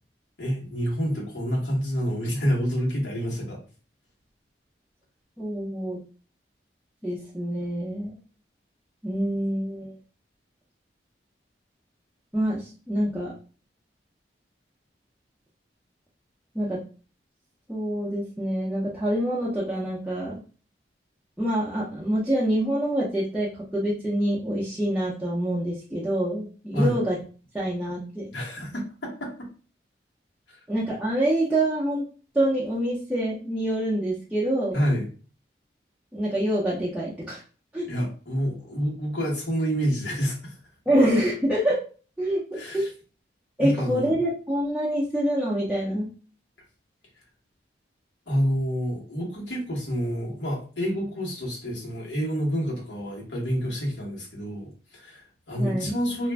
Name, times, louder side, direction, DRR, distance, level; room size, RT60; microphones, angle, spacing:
voice 1, 0.4-3.6 26.7-26.9 28.3-29.5 30.5-30.6 34.7-35.1 37.9-40.6 42.5-42.9 43.6-44.2 48.3-56.3, equal, 80° left, -3 dB, 1.1 m, -28 dB
voice 2, 5.4-6.0 7.0-8.2 9.0-9.9 12.3-13.3 16.5-16.8 17.7-20.3 21.4-27.2 27.5-28.3 30.7-32.0 32.3-34.8 36.1-37.4 37.7-37.8 40.9-41.8 42.2-42.4 42.7-42.9 43.6-46.1 55.6-56.0, right 1 dB, 5° right, -9 dB, 0.5 m, -26 dB
2.4 x 2.1 x 3.2 m, 0.37 s
head